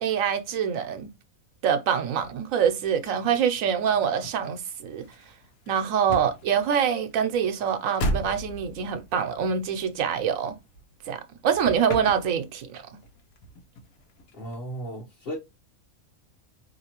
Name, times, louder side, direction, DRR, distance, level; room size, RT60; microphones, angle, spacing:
voice 1, 0.0-1.1 1.6-5.1 5.7-10.6 11.1-12.8, right 7 dB, 75° right, 1.0 m, -25 dB
sound 1, 1.9-11.2 11.5-12.7 13.0-14.6, equal, 85° left, 1.2 m, -37 dB
voice 2, 14.3-15.4, right 1 dB, 45° left, 1.1 m, -35 dB
3.9 x 2.9 x 2.8 m
omnidirectional pair, 1.5 m